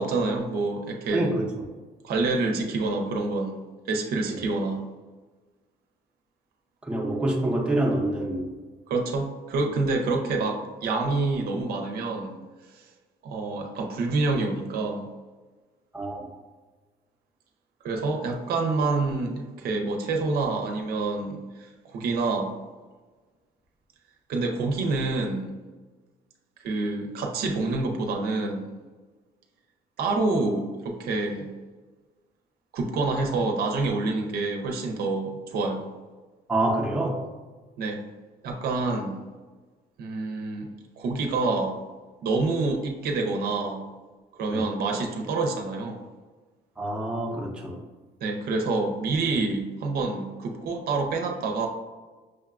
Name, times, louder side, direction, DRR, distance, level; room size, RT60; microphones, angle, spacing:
voice 1, 0.0-1.3 2.0-3.6 3.9-4.8 8.9-12.4 12.7-12.9 13.2-15.1 17.8-22.5 24.3-25.5 26.6-28.6 30.0-31.5 32.7-35.9 37.8-38.0 38.4-39.2 40.0-40.7 41.0-41.8 42.2-43.9 44.4-46.0 48.2-51.7, right 3 dB, 65° right, 3 dB, 0.6 m, -27 dB
voice 2, 1.1-1.5 4.3-4.4 6.8-8.5 15.9-16.3 36.5-37.2 44.5-44.7 46.8-47.8, right 1 dB, 5° right, -2 dB, 0.7 m, -26 dB
6.2 x 2.2 x 2.4 m, 1.3 s
cardioid pair, 110°, 17 cm